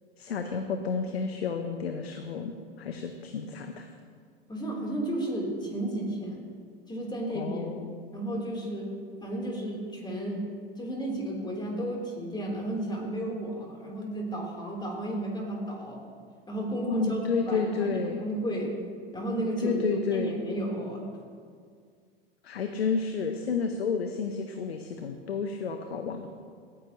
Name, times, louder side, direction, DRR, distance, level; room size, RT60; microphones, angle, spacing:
voice 1, 0.2-2.5 2.8-3.9 7.3-8.0 16.9-18.2 19.6-20.4 22.4-26.3, left 5 dB, 90° left, 6 dB, 0.8 m, -31 dB
voice 2, 4.5-6.4 6.9-7.6 8.1-8.9 9.2-10.4 10.8-16.0 16.5-18.7 19.1-21.1, right 1 dB, 15° left, -2 dB, 3.4 m, -33 dB
17.5 x 9.8 x 3.0 m, 2.1 s
hypercardioid pair, 95°, 30 cm